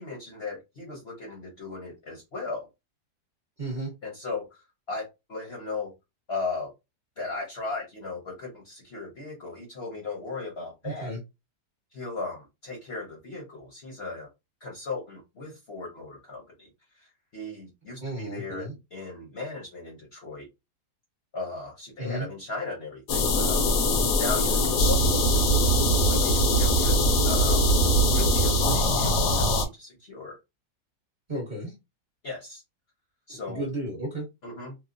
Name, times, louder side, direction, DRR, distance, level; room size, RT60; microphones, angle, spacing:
voice 1, 0.0-2.7 4.0-5.9 6.3-6.7 7.2-11.1 11.9-14.3 14.6-16.7 17.0-20.5 21.3-23.7 24.2-25.6 26.0-27.0 27.2-27.7 28.1-30.4 32.2-32.6 33.3-33.7 34.4-34.8, left 3 dB, 50° left, 0.8 m, -37 dB
voice 2, 3.6-3.9 10.8-11.2 18.0-18.7 22.0-22.3 31.3-31.7 33.5-34.3, right 1 dB, 35° right, 1.0 m, -33 dB
sound 1, 23.1-29.6, equal, 80° left, 1.2 m, -22 dB
3.0 x 2.0 x 2.5 m
omnidirectional pair, 1.7 m